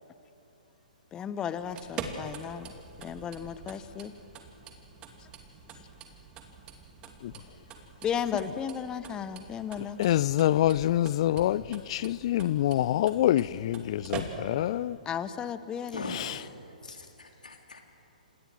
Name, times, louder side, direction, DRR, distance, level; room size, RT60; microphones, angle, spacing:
voice 1, 1.1-2.7 3.0-4.1 8.0-10.0 15.1-16.2, left 8 dB, 15° left, 1.0 m, -34 dB
sound 1, 1.6-14.7, right 5 dB, 20° right, 2.6 m, -44 dB
voice 2, 9.8-15.0 16.1-16.4, left 13 dB, 40° left, 0.5 m, -26 dB
voice 3, 15.9-16.5 16.8-17.8, left 3 dB, 70° left, 3.8 m, -40 dB
30.0 x 27.5 x 6.4 m
figure-of-eight pair, 120°, 4 cm